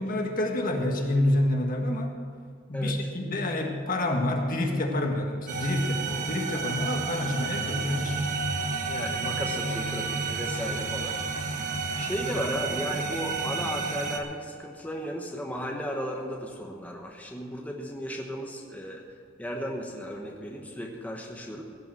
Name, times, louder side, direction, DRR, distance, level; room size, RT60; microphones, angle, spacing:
voice 1, 0.0-2.1 2.7-8.2 12.2-12.3, left 1 dB, 45° left, 2 dB, 1.7 m, -28 dB
sound 1, 5.5-14.2, right 4 dB, 40° right, 1.4 m, -31 dB
voice 2, 8.9-11.2 11.9-19.0 19.4-21.6, equal, 10° left, 0 dB, 1.1 m, -35 dB
16.5 x 6.9 x 7.9 m, 2.3 s
head